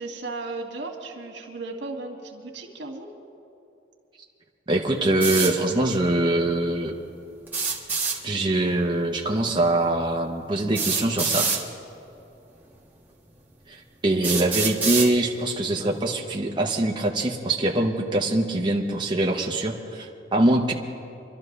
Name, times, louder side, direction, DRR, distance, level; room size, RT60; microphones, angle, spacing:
voice 1, 0.0-3.1, right 3 dB, 80° right, 1 dB, 1.9 m, -35 dB
voice 2, 4.7-6.9 8.2-11.5 13.7-20.7, right 1 dB, 25° right, 0 dB, 0.9 m, -23 dB
sound 1, 5.2-5.5 7.5-8.2 9.6-9.7 10.7-11.6 12.6-12.7 13.4-13.5 14.2-15.1, right 5 dB, 10° right, 1.5 m, -25 dB
25.5 x 12.5 x 3.3 m, 2.8 s
head